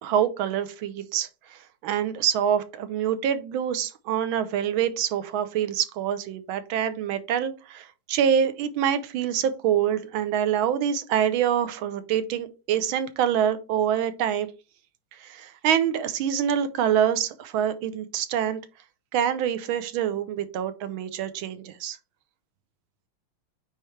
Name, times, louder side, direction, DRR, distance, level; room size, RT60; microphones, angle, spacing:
voice 1, 0.0-14.5 15.2-18.6 19.1-22.0, right 9 dB, 70° right, 11 dB, 1.5 m, -26 dB
9.0 x 3.3 x 3.2 m, 0.31 s
omnidirectional pair, 2.4 m